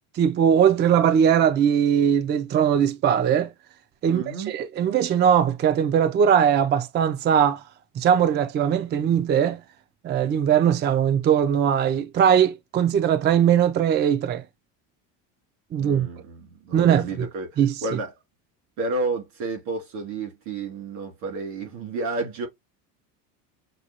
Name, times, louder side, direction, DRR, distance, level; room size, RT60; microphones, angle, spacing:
voice 1, 0.2-3.5 4.0-7.6 8.0-9.6 10.0-14.4 15.7-16.1 16.7-17.3 17.6-17.7, right 8 dB, 25° right, 0.4 m, -20 dB
voice 2, 4.0-4.5 15.8-18.1 18.8-22.5, right 3 dB, 80° right, 3.0 m, -31 dB
6.4 x 2.3 x 2.8 m
supercardioid pair, 120°, 40 cm